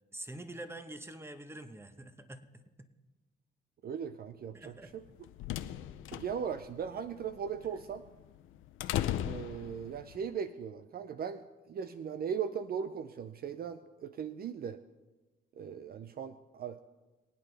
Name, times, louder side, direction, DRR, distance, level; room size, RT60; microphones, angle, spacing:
voice 1, 0.1-2.9 4.5-4.9, right 1 dB, 10° right, 8 dB, 1.1 m, -46 dB
voice 2, 3.8-5.0 6.1-8.0 9.2-14.8 15.6-16.8, right 7 dB, 50° right, 11 dB, 0.5 m, -38 dB
sound 1, 4.9-10.2, left 12 dB, 85° left, 0.6 m, -38 dB
22.5 x 9.0 x 3.4 m, 1.1 s
cardioid pair, 90°, 20 cm